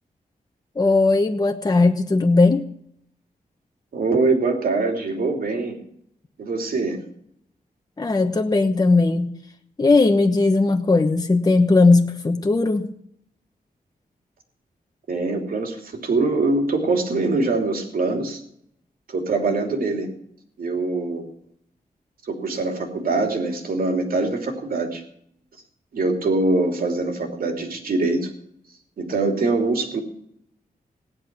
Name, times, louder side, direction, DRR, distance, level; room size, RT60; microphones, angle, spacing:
voice 1, 0.8-2.7 8.0-9.3 9.8-12.9, left 3 dB, 25° left, 4 dB, 1.1 m, -18 dB
voice 2, 3.9-5.8 6.4-7.0 15.1-18.4 19.1-20.1 20.6-21.2 22.2-25.0 25.9-28.3 29.0-30.0, right 3 dB, 75° right, 4 dB, 3.0 m, -23 dB
17.0 x 10.5 x 6.1 m, 0.69 s
wide cardioid pair, 115°, 15 cm